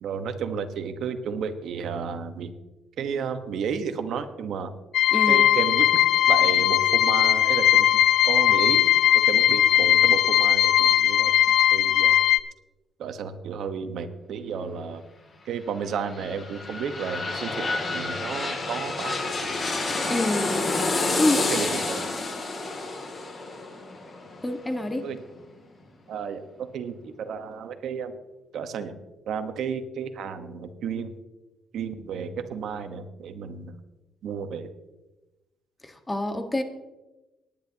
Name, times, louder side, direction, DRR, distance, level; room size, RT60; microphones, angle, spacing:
voice 1, 0.0-2.5 3.0-4.7 5.3-5.9 6.2-7.6 7.9-8.0 8.2-8.9 9.2-12.2 13.0-15.0 15.4-19.5 21.5-22.1 25.0-25.2 26.1-28.2 28.5-28.9 29.3-31.2 31.7-33.8 34.2-34.7, right 6 dB, 75° right, 8 dB, 1.2 m, -32 dB
sound 1, 4.9-12.4, left 12 dB, 75° left, 0.4 m, -19 dB
voice 2, 5.1-5.4 20.1-20.5 21.2-21.5 24.4-25.1 35.8-36.6, left 1 dB, 15° left, 6 dB, 1.5 m, -26 dB
sound 2, 15.8-25.4 25.8-25.9, left 3 dB, 40° left, 2.6 m, -29 dB
19.5 x 10.0 x 2.9 m, 1.0 s
cardioid pair, 90°, 0 cm